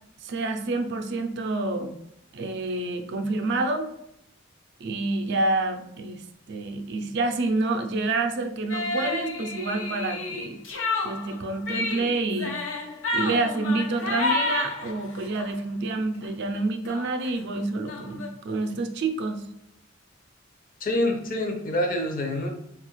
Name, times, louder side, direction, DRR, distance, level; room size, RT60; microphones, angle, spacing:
voice 1, 0.2-1.9 2.3-3.9 4.8-6.2 6.5-10.6 11.0-12.6 13.1-19.4, right 2 dB, 60° right, 6 dB, 0.4 m, -28 dB
sound 1, 8.7-15.5 16.0-16.3 16.5-16.6 16.8-18.3, left 3 dB, 90° left, 0.7 m, -31 dB
voice 2, 20.8-22.5, left 1 dB, 45° left, 3 dB, 0.6 m, -26 dB
4.1 x 2.3 x 3.0 m, 0.79 s
head